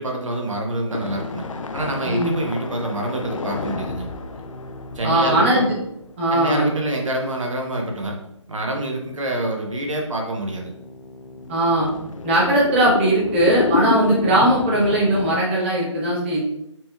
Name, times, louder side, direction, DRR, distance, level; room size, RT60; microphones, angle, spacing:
voice 1, 0.0-1.4 1.7-4.1 4.9-5.6 6.3-8.1 8.5-10.7, right 1 dB, 75° right, 0 dB, 0.9 m, -26 dB
sound 1, 0.9-6.8 7.3-7.4 8.0-8.1 9.9-15.4, left 4 dB, 80° left, 0.5 m, -30 dB
voice 2, 5.0-5.7 6.2-6.6 11.5-11.9 12.2-16.4, right 1 dB, 25° right, -6 dB, 0.8 m, -19 dB
4.2 x 3.0 x 2.3 m, 0.80 s
figure-of-eight pair, 160°, 16 cm